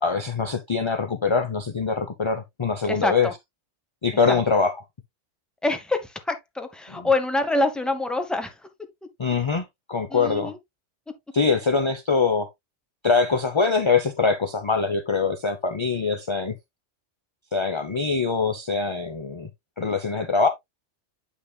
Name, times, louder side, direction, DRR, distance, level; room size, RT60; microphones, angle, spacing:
voice 1, 0.0-3.3 4.0-4.7 7.0-7.1 9.2-10.5 11.3-12.5 13.0-16.6 17.5-19.5 19.8-20.5, left 4 dB, 35° left, 0.6 m, -23 dB
voice 2, 2.9-3.3 4.3-4.4 5.6-8.6 10.1-10.6, left 2 dB, ahead, 0.9 m, -25 dB
8.2 x 5.7 x 2.3 m
omnidirectional pair, 1.2 m